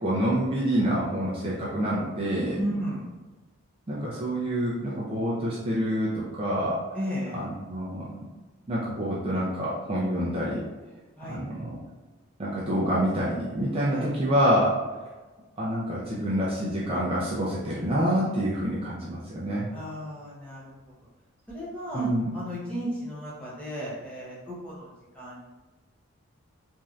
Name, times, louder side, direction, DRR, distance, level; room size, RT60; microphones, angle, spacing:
voice 1, 0.0-2.6 3.9-6.8 7.3-8.2 8.7-10.6 11.3-11.7 12.4-14.8 15.6-19.7 21.9-22.3, equal, 25° right, -7 dB, 0.4 m, -27 dB
voice 2, 2.5-3.1 6.9-7.4 11.2-11.5 13.9-14.1 19.7-21.0 21.5-25.5, equal, 5° left, -8 dB, 0.8 m, -34 dB
3.1 x 2.6 x 2.4 m, 1.2 s
head